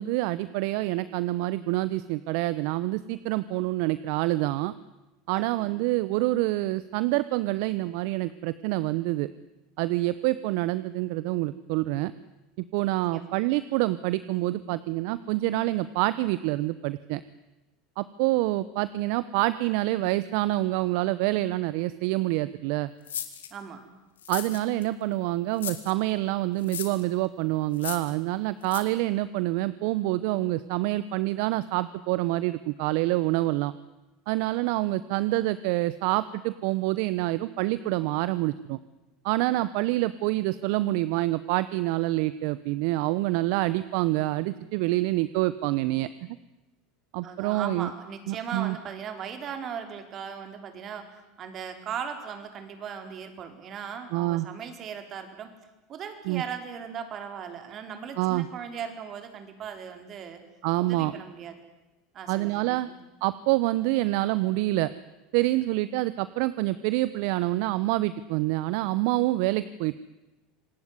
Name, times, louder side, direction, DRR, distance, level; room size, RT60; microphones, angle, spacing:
voice 1, 0.0-4.7 5.3-9.3 9.8-12.1 12.6-17.2 18.0-22.9 24.3-33.7 34.3-38.8 39.2-46.4 47.1-47.9 48.3-48.8 54.1-54.5 56.3-56.4 58.2-58.5 60.6-61.1 62.3-62.9 63.2-64.9 65.3-70.0, right 17 dB, 65° right, 16 dB, 0.8 m, -27 dB
voice 2, 5.3-5.9 12.8-13.4 23.5-23.9 47.2-55.5 55.9-60.4 60.8-61.5 62.1-63.0, right 7 dB, 45° right, 7 dB, 4.7 m, -38 dB
sound 1, 23.1-23.5 24.2-24.9 25.6-25.9 26.6-27.0 27.7-28.1 28.7-28.8, left 9 dB, 85° left, 2.5 m, -35 dB
26.5 x 18.5 x 9.8 m, 1.1 s
hypercardioid pair, 85°, 0 cm